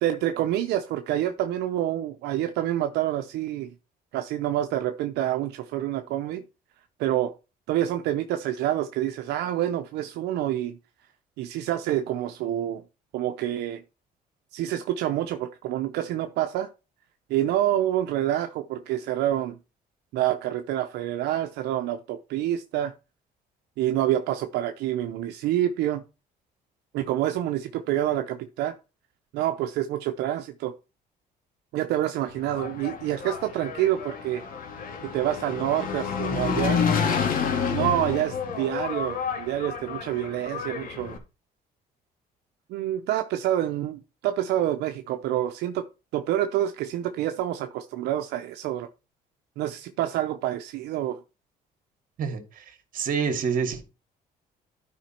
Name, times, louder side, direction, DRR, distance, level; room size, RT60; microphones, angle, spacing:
voice 1, 0.0-3.7 4.1-6.4 7.0-7.3 7.7-10.8 11.4-12.8 13.1-13.8 14.5-16.7 17.3-19.6 20.1-22.9 23.8-26.0 26.9-28.8 29.3-30.7 31.7-34.4 35.1-36.8 37.7-41.2 42.7-45.9 46.1-48.9 49.6-51.2, right 12 dB, 85° right, 0.8 m, -27 dB
Engine, 32.3-41.2, left 6 dB, 55° left, 2.6 m, -29 dB
voice 2, 52.2-52.6 52.9-53.8, right 6 dB, 55° right, 2.4 m, -27 dB
12.5 x 5.2 x 4.5 m
cardioid pair, 110°, 17 cm